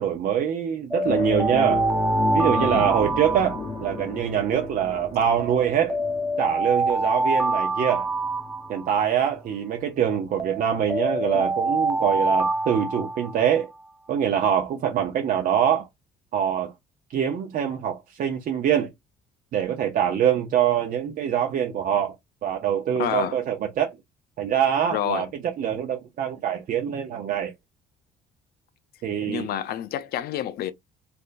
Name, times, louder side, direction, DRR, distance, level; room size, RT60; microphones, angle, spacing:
voice 1, 0.0-1.8 2.3-6.0 6.4-8.1 8.7-13.7 14.1-15.9 16.3-16.7 17.1-18.9 19.5-22.2 22.4-24.0 24.4-27.5 29.0-29.5, right 9 dB, 55° right, 0.7 m, -24 dB
Alarm, 0.9-4.2 5.4-9.2 10.4-13.7, right 2 dB, 5° right, 0.6 m, -26 dB
sound 1, 1.1-10.0 10.3-10.5 12.6-12.7, left 3 dB, 30° left, 1.0 m, -33 dB
voice 2, 2.5-2.9 11.3-11.5 23.0-23.4 24.9-25.3 29.3-30.7, left 10 dB, 65° left, 0.5 m, -29 dB
3.3 x 2.2 x 2.5 m
cardioid pair, 110°, 17 cm